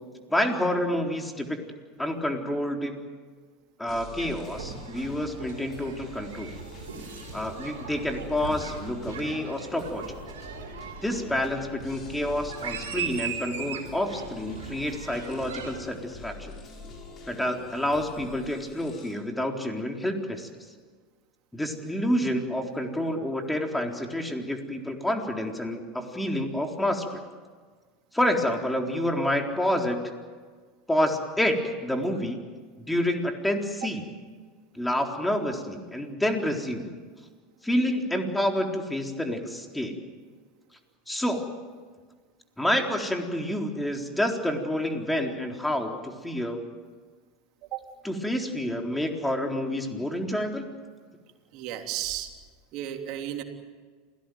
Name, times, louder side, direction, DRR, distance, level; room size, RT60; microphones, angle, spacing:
voice 1, 0.3-1.6 2.0-3.0 3.8-6.5 7.3-10.0 11.0-16.5 17.3-20.5 21.5-27.2 28.1-30.0 30.9-32.4 32.9-34.0 34.7-36.9 37.6-40.0 41.1-41.4 42.6-46.6 48.0-50.7, left 1 dB, 5° left, 3 dB, 4.0 m, -28 dB
sound 1, 3.9-19.1, left 3 dB, 40° left, 7.7 m, -45 dB
sound 2, 4.2-15.8, right 6 dB, 80° right, 4.2 m, -39 dB
voice 2, 51.5-52.3 52.7-53.4, right 12 dB, 55° right, 4 dB, 3.3 m, -33 dB
28.0 x 18.0 x 9.4 m, 1.5 s
hypercardioid pair, 85°, 0 cm